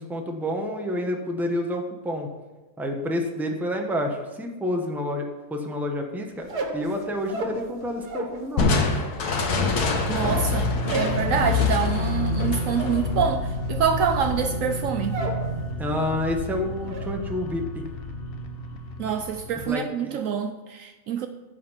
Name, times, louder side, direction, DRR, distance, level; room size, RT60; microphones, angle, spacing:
voice 1, 0.0-2.3 2.8-6.5 6.7-8.8 15.8-17.8 19.6-20.2, left 1 dB, ahead, 0.9 m, -29 dB
sound 1, 6.4-8.4 8.7-15.5 15.8-16.3 16.6-17.1, right 2 dB, 90° right, 1.9 m, -34 dB
Crushing, 8.6-14.0, left 3 dB, 85° left, 1.7 m, -26 dB
sound 2, 9.3-19.7, left 3 dB, 45° left, 0.9 m, -29 dB
voice 2, 10.1-15.2 19.0-21.3, right 7 dB, 70° right, 0.9 m, -26 dB
14.5 x 5.0 x 5.7 m
omnidirectional pair, 1.6 m